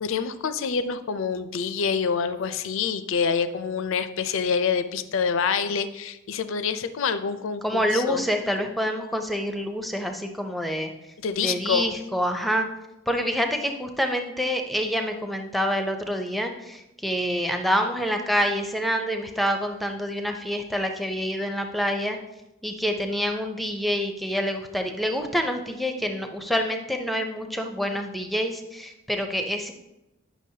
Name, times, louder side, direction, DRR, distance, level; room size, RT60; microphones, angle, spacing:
voice 1, 0.0-8.2 11.2-11.9, left 6 dB, 65° left, 11 dB, 0.4 m, -26 dB
voice 2, 7.6-10.9 11.4-12.7 13.1-22.2 22.6-29.7, equal, ahead, 5 dB, 0.5 m, -27 dB
9.1 x 6.0 x 2.8 m, 0.94 s
head